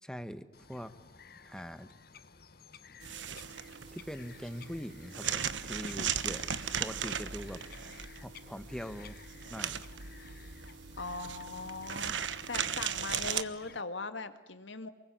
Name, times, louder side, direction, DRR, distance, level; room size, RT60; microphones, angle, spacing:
voice 1, 0.0-0.9 1.4-1.9 3.9-6.5 6.8-7.6 8.2-9.2 9.5-9.9, equal, 5° left, 11 dB, 1.4 m, -42 dB
Bird vocalization bird call bird song, 0.5-13.8, left 5 dB, 55° left, 1.2 m, -55 dB
sound 1, 3.0-13.4, right 8 dB, 85° right, 1.2 m, -37 dB
voice 2, 11.0-12.2 12.5-14.9, left 3 dB, 85° left, 10 dB, 2.2 m, -40 dB
28.5 x 21.0 x 9.5 m, 1.1 s
head